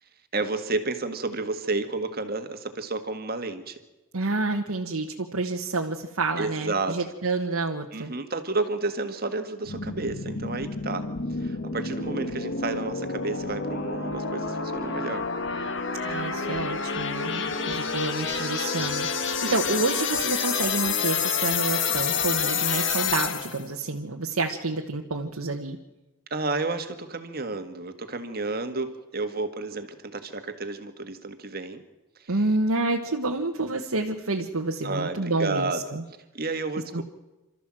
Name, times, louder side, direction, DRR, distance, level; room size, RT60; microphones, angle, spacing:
voice 1, 0.3-3.8 6.4-7.1 7.9-15.3 17.3-17.8 19.4-19.8 26.3-31.8 32.2-32.4 34.8-36.0 36.3-37.0, right 3 dB, 45° right, 8 dB, 1.7 m, -31 dB
voice 2, 4.1-8.1 16.0-25.8 32.3-36.0 36.9-37.0, right 3 dB, 80° right, 1 dB, 1.3 m, -29 dB
sound 1, 9.7-23.7, left 5 dB, 55° left, 1.6 m, -29 dB
28.0 x 13.5 x 7.6 m, 1.1 s
head